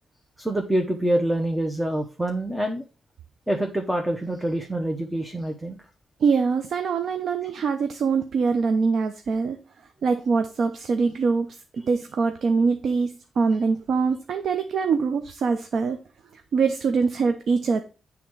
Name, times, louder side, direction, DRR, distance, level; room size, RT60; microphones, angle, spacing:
voice 1, 0.4-2.8 3.5-5.8, right 1 dB, 10° right, 3 dB, 0.8 m, -26 dB
voice 2, 6.2-9.6 10.0-11.5 11.9-16.0 16.3-17.8, right 5 dB, 65° right, 8 dB, 0.6 m, -23 dB
9.1 x 3.6 x 4.7 m, 0.34 s
cardioid pair, 110°, 0 cm